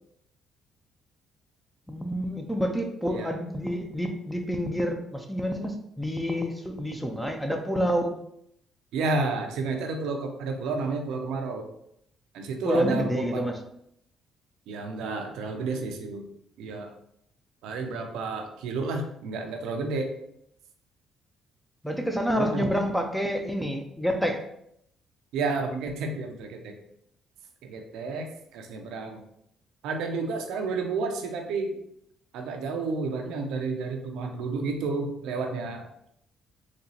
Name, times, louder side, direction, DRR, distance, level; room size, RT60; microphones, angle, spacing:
voice 1, 1.9-8.2 12.6-13.6 21.8-24.4, equal, ahead, 4 dB, 0.7 m, -28 dB
voice 2, 8.9-11.7 12.3-13.5 14.7-16.3 16.6-16.9 17.6-20.1 22.4-22.7 25.3-26.8 27.6-29.2 29.8-31.8 32.3-35.8, right 3 dB, 80° right, 4 dB, 0.5 m, -31 dB
4.1 x 2.9 x 2.8 m, 0.74 s
supercardioid pair, 65°, 0 cm